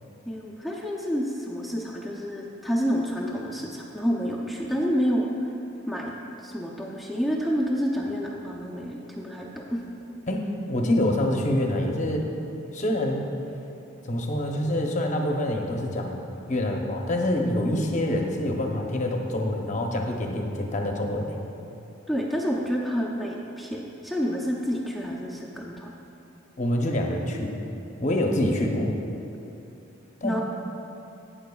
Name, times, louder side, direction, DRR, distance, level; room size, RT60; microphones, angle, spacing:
voice 1, 0.3-5.5 5.9-6.1 6.4-9.8 22.1-25.9 28.3-28.4 30.2-30.4, equal, ahead, -3 dB, 0.5 m, -29 dB
voice 2, 10.7-12.3 12.7-13.3 14.0-16.2 16.5-21.3 26.6-27.6 28.0-28.9 30.2-30.4, left 1 dB, 35° left, 2 dB, 0.7 m, -26 dB
12.0 x 8.8 x 2.3 m, 2.9 s
head